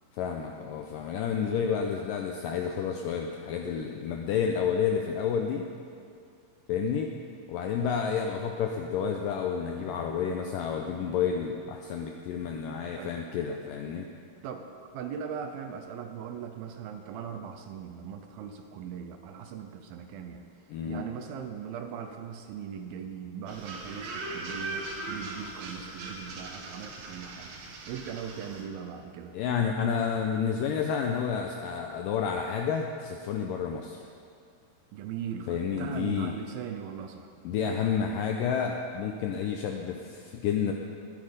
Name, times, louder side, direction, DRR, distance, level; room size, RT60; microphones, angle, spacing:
voice 1, 0.1-5.7 6.7-7.1 7.5-14.1 20.7-21.1 29.3-34.0 35.5-36.3 37.4-40.7, left 7 dB, 80° left, 3 dB, 1.9 m, -30 dB
voice 2, 12.9-13.2 14.4-14.7 14.9-20.5 20.9-27.6 27.9-29.4 34.9-37.3, right 7 dB, 80° right, 7 dB, 2.3 m, -39 dB
sound 1, 23.5-28.6, right 2 dB, 60° right, 1.8 m, -39 dB
20.5 x 8.0 x 5.1 m, 2.3 s
omnidirectional pair, 4.6 m